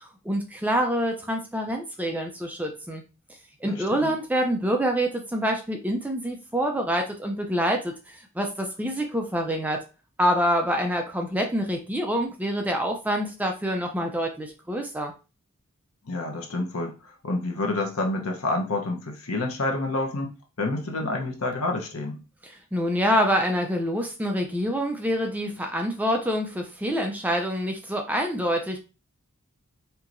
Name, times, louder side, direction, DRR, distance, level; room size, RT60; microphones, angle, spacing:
voice 1, 0.2-3.0 3.6-9.8 10.2-15.1 22.4-28.8, equal, 5° right, 3 dB, 0.4 m, -26 dB
voice 2, 3.7-4.1 16.1-16.9 17.2-20.3 20.6-22.2, left 2 dB, 65° left, 3 dB, 0.9 m, -28 dB
4.5 x 2.8 x 2.6 m, 0.31 s
head